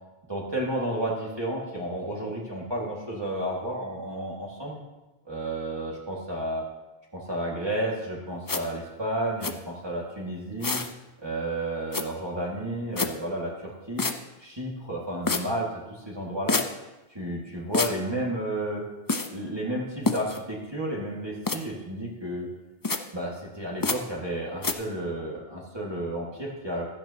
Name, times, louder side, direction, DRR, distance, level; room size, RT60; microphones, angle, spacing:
voice 1, 0.3-4.8 5.3-6.6 7.1-10.8 11.2-14.1 14.4-16.6 17.1-18.8 19.3-22.5 23.1-26.9, right 1 dB, 25° right, -5 dB, 2.1 m, -32 dB
sound 1, 8.5-8.6 9.4-9.5 10.6-10.9 11.9-12.0 13.0-13.1 14.0-14.1 15.3-15.4 16.5-16.7 17.7-17.9 19.1-19.3 20.1-20.4 21.5-21.6 22.8-23.0 23.8-24.0 24.6-24.7, left 3 dB, 25° left, 0.5 m, -26 dB
16.0 x 12.5 x 2.9 m, 1.1 s
omnidirectional pair, 1.0 m